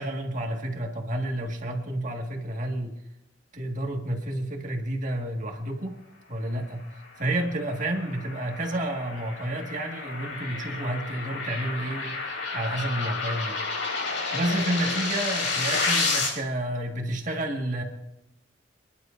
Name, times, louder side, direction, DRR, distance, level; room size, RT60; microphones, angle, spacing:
voice 1, 0.0-2.9 3.5-6.0 6.3-6.9 7.2-12.1 12.5-13.6 14.3-17.8, right 1 dB, 40° right, 1 dB, 1.8 m, -30 dB
sound 1, 7.4-16.3, left 3 dB, 85° left, 5.0 m, -30 dB
28.5 x 11.0 x 2.6 m, 0.95 s
head